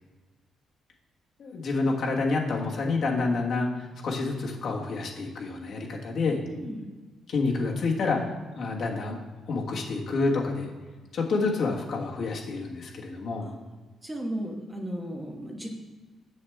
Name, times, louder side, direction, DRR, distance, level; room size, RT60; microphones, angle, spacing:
voice 1, 1.4-3.7 4.0-6.4 7.3-9.2 9.5-10.7 11.1-13.5, left 3 dB, 60° left, -1 dB, 1.5 m, -28 dB
voice 2, 6.5-6.8 13.4-13.5 14.0-15.8, right 1 dB, 15° right, 1 dB, 1.3 m, -35 dB
7.1 x 6.6 x 3.5 m, 1.3 s
cardioid pair, 90°, 0 cm